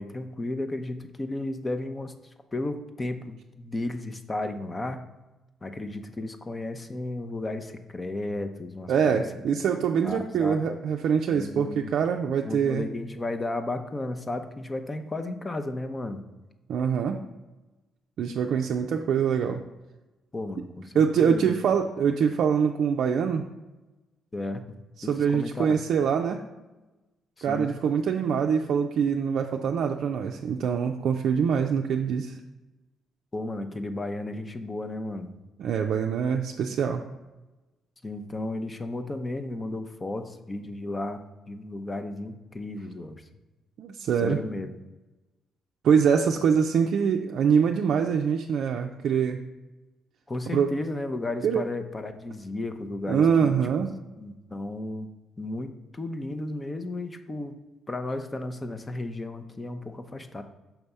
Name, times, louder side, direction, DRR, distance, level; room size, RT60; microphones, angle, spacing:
voice 1, 0.0-2.2 2.5-5.0 5.6-9.2 9.9-10.8 11.3-11.9 12.4-16.2 20.3-21.5 24.3-24.6 25.0-25.8 27.4-27.7 33.3-35.3 38.0-41.2 41.5-43.2 44.2-44.8 50.3-53.6 54.2-55.1 55.4-57.6 57.9-60.4, left 2 dB, 25° left, 8 dB, 0.6 m, -34 dB
voice 2, 8.9-12.9 16.7-17.2 18.2-19.6 21.0-23.4 25.0-26.4 27.4-32.4 35.6-37.0 43.8-44.4 45.8-49.4 50.5-50.7 51.4-51.6 53.1-53.9, right 7 dB, 70° right, 2 dB, 0.4 m, -24 dB
5.8 x 3.4 x 5.4 m, 1.1 s
cardioid pair, 90°, 0 cm